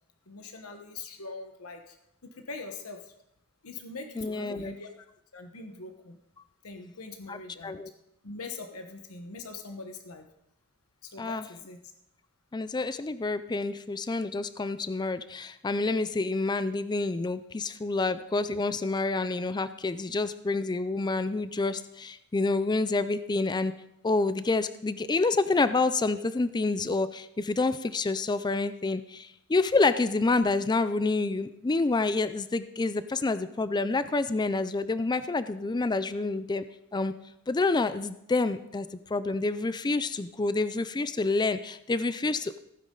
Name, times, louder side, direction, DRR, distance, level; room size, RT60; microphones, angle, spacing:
voice 1, 0.3-1.9 2.5-3.0 3.6-5.1 5.3-6.2 6.6-7.8 8.2-10.3 11.0-11.8, left 3 dB, 70° left, 5 dB, 1.2 m, -42 dB
voice 2, 4.2-4.7 7.3-7.4 7.6-7.9 11.2-11.4 12.5-23.7 24.0-36.6 36.9-37.1 37.5-42.6, left 3 dB, 20° left, 13 dB, 0.4 m, -28 dB
15.5 x 9.5 x 3.8 m, 0.81 s
head